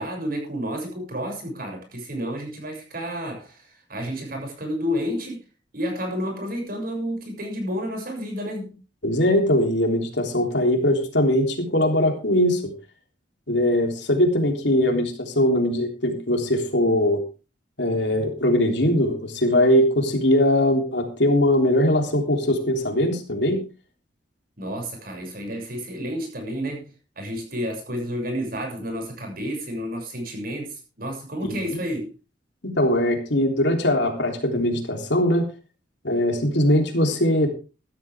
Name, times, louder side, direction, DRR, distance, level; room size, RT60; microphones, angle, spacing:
voice 1, 0.0-5.4 5.7-8.7 24.6-32.1, equal, 50° right, 7.0 m, -30 dB
voice 2, 9.0-12.7 13.5-17.2 17.8-23.6 31.4-31.8 32.6-35.4 36.0-37.5, left 1 dB, 70° left, 3.4 m, -21 dB
15.0 x 13.5 x 3.6 m
head